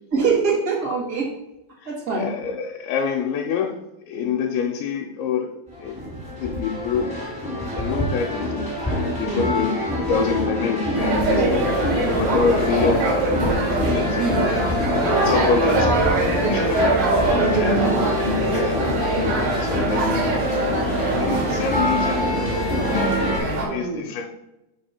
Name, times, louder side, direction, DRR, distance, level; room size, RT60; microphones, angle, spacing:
voice 1, 0.1-1.3 1.9-2.3 9.2-9.5 11.3-11.5 14.2-14.4 16.4-18.6 23.6-24.0, right 4 dB, 25° right, -6 dB, 2.0 m, -25 dB
voice 2, 1.8-3.8 4.1-5.5 5.8-6.0 6.3-7.1 7.7-11.7 12.1-14.3 15.2-16.8 17.2-17.3 17.5-17.7 18.5-18.8 19.3-20.1 20.4-20.7 21.2-24.3, left 6 dB, 80° left, 0 dB, 2.5 m, -27 dB
sound 1, 5.7-23.4, left 1 dB, ahead, 1.7 m, -26 dB
sound 2, 10.9-23.7, right 1 dB, 70° right, 3.8 m, -23 dB
6.9 x 3.6 x 5.9 m, 0.92 s
omnidirectional pair, 4.6 m